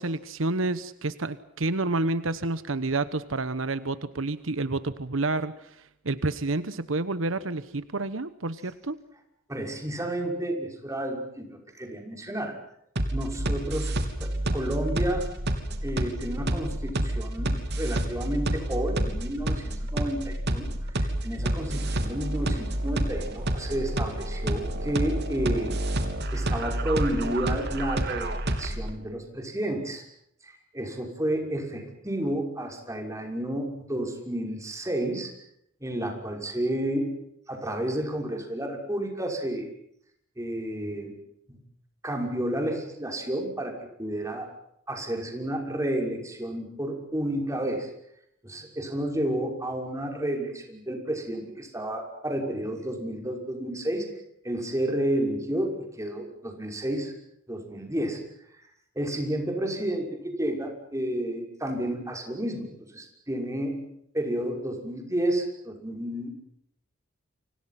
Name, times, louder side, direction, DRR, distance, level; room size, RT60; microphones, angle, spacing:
voice 1, 0.0-9.0, right 2 dB, 80° right, 14 dB, 1.1 m, -29 dB
voice 2, 9.5-12.5 13.1-13.9 14.2-15.3 15.8-21.0 21.2-25.7 26.3-30.0 30.4-35.3 35.8-37.1 37.5-39.7 40.4-41.1 41.5-41.6 42.0-43.7 44.0-44.5 44.9-47.9 48.4-54.1 54.4-57.1 57.5-58.2 59.0-66.3, right 1 dB, 15° right, 2 dB, 5.9 m, -31 dB
sound 1, 13.0-28.9, right 1 dB, 55° right, 3.3 m, -29 dB
29.5 x 25.5 x 5.9 m, 0.74 s
head